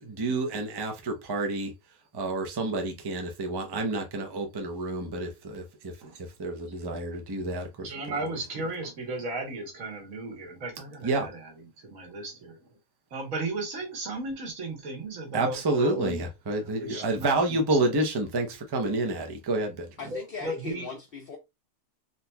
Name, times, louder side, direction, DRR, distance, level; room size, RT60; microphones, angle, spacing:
voice 1, 0.0-1.7 2.1-8.3 8.5-8.7 11.0-11.3 15.3-20.1, right 2 dB, 30° right, 0.4 m, -29 dB
voice 2, 7.8-11.5 11.8-12.6 13.1-16.2 16.6-17.6 17.9-18.0 20.1-20.9, right 2 dB, 65° right, 1.5 m, -35 dB
voice 3, 20.0-21.4, left 4 dB, 50° left, 0.8 m, -39 dB
3.8 x 2.8 x 2.2 m
omnidirectional pair, 1.5 m